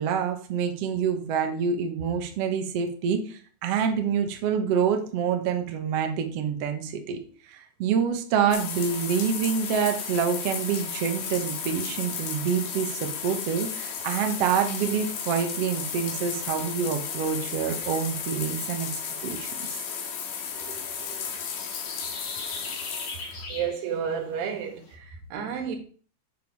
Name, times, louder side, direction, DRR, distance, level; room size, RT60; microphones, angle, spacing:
voice 1, 0.0-7.2 7.5-18.9 19.2-19.7, right 7 dB, 60° right, 1.6 m, -27 dB
sound 1, 8.5-23.5, left 7 dB, 70° left, 3.3 m, -34 dB
sound 2, 15.5-24.9, left 3 dB, 45° left, 2.7 m, -45 dB
voice 2, 20.5-21.4 23.5-25.8, right 7 dB, 90° right, 3.6 m, -32 dB
7.6 x 7.1 x 4.7 m
omnidirectional pair, 4.5 m